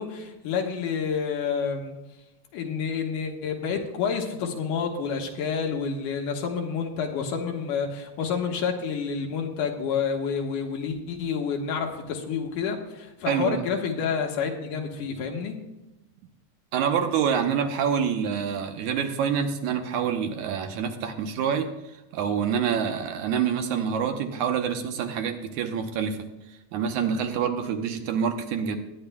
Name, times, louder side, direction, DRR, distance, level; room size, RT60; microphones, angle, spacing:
voice 1, 0.0-2.0 2.5-15.6, left 6 dB, 80° left, 2 dB, 2.9 m, -29 dB
voice 2, 13.3-13.7 16.7-21.7 22.1-26.2 26.7-28.8, right 7 dB, 75° right, 6 dB, 2.2 m, -26 dB
20.5 x 10.0 x 2.2 m, 0.99 s
omnidirectional pair, 3.6 m